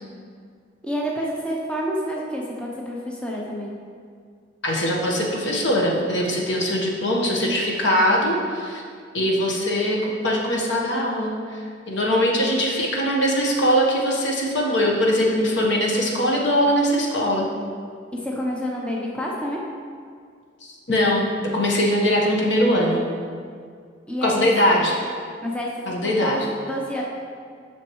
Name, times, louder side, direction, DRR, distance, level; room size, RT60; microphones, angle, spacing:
voice 1, 0.8-3.7 18.1-19.6 24.1-24.5 25.4-25.7 26.0-27.0, equal, 5° left, -3 dB, 0.6 m, -28 dB
voice 2, 4.6-8.8 9.1-17.5 20.9-21.2 21.5-23.0 24.2-25.0 25.9-26.4, equal, 65° left, -2 dB, 1.2 m, -21 dB
9.3 x 6.2 x 3.1 m, 2.1 s
head